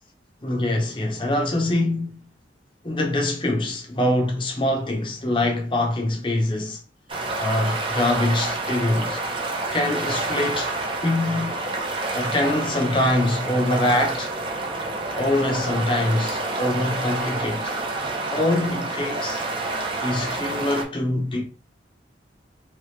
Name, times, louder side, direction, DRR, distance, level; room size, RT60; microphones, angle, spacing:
voice 1, 0.4-2.3 2.8-6.8 7.4-9.2 9.7-10.7 11.0-11.6 12.1-14.3 15.1-17.7 18.3-19.4 20.0-21.4, left 1 dB, 25° left, 0.9 m, -24 dB
sound 1, 7.1-20.8, right 2 dB, 30° right, 0.7 m, -28 dB
3.4 x 3.3 x 3.2 m
head